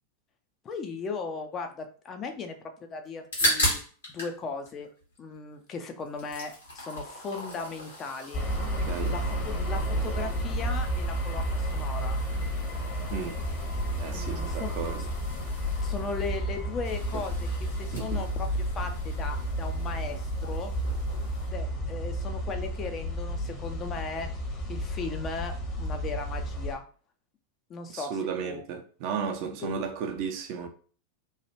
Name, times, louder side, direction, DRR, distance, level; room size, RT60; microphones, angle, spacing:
voice 1, 0.6-2.6 2.9-3.8 4.1-4.9 5.2-8.5 9.1-12.2 14.1-14.7 15.8-20.7 21.5-24.3 24.7-26.8 27.7-28.1 28.4-28.6, left 4 dB, 25° left, 0.4 m, -37 dB
sound 1, 3.1-4.4 4.6-5.7 6.0-21.5, equal, 70° left, 1.3 m, -37 dB
sound 2, 8.3-26.7, equal, 45° left, 1.0 m, -31 dB
voice 2, 8.8-9.1 13.1-13.4 14.0-15.1 17.9-18.3 27.9-30.7, right 6 dB, 45° right, 0.5 m, -34 dB
3.1 x 2.3 x 2.9 m
figure-of-eight pair, 90°, 0 cm